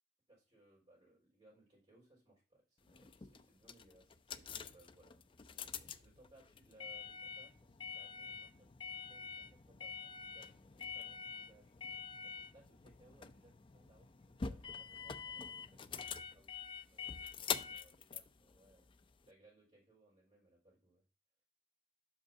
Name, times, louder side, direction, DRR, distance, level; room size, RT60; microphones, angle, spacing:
voice 1, 0.3-11.7 12.2-15.8 16.1-18.9 19.2-21.0, right 2 dB, 30° right, -9 dB, 4.7 m, -67 dB
sound 1, 2.9-19.3, left 6 dB, 30° left, 0.4 m, -46 dB
5.8 x 5.4 x 5.7 m, 0.34 s
head